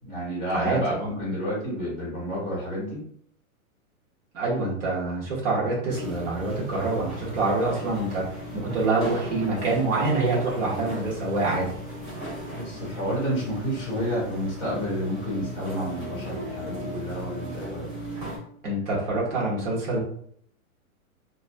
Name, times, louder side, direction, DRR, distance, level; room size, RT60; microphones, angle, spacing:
voice 1, 0.0-3.0 12.5-17.9, equal, ahead, -10 dB, 0.7 m, -30 dB
voice 2, 0.5-1.1 4.3-8.3 8.5-11.7 18.6-20.0, right 2 dB, 55° right, -5 dB, 1.3 m, -26 dB
sound 1, 5.9-18.4, right 1 dB, 35° right, 0.9 m, -36 dB
2.5 x 2.4 x 2.6 m, 0.65 s
hypercardioid pair, 175°, 44 cm